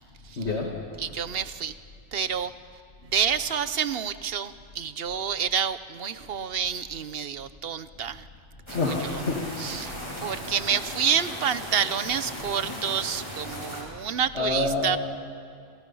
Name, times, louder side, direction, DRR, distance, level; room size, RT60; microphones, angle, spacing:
voice 1, 0.4-1.0 8.7-9.8 14.3-15.0, left 3 dB, 65° left, 1 dB, 2.3 m, -28 dB
voice 2, 1.0-1.7 2.1-2.5 3.1-8.3 8.7-9.2 9.6-9.9 10.2-15.0, right 7 dB, 55° right, 13 dB, 1.1 m, -28 dB
sound 1, 8.7-13.8, equal, 20° left, 4.8 m, -37 dB
30.0 x 27.0 x 5.6 m, 2.4 s
omnidirectional pair, 1.2 m